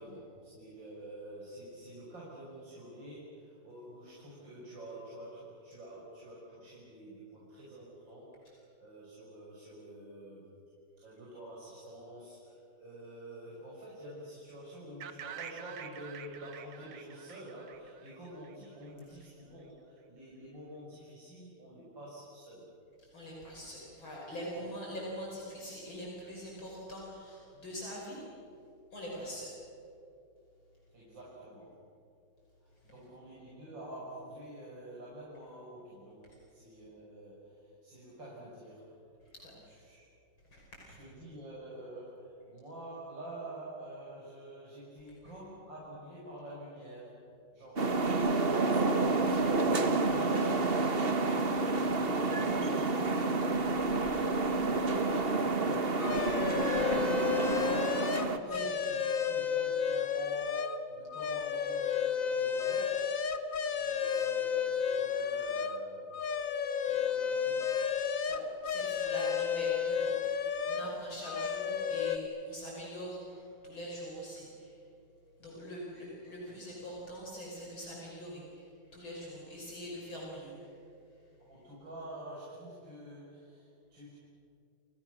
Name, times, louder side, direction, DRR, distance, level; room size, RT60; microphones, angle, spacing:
voice 1, 0.0-10.5 11.0-22.7 24.5-24.8 30.9-31.8 32.6-39.0 39.7-40.1 40.8-47.2 47.5-47.9 58.3-63.1 63.7-66.2 66.8-67.7 76.5-76.8 81.5-84.1, right 1 dB, 60° right, -6 dB, 6.7 m, -48 dB
sound 1, 15.0-18.9, right 8 dB, 80° right, 2.1 m, -47 dB
voice 2, 23.0-28.2 28.9-29.6 36.2-36.4 39.2-39.8 40.5-40.6 52.4-52.8 53.1-53.3 58.4-58.7 68.2-74.8 75.4-80.8 81.2-81.3, equal, 70° left, -3 dB, 6.3 m, -44 dB
sound 2, 47.8-58.4, right 3 dB, 30° right, 1.5 m, -29 dB
sound 3, 56.0-60.8 61.1-65.8 66.1-70.9 71.2-72.2, left 7 dB, 45° left, 1.5 m, -32 dB
30.0 x 29.5 x 6.5 m, 2.6 s
omnidirectional pair, 2.3 m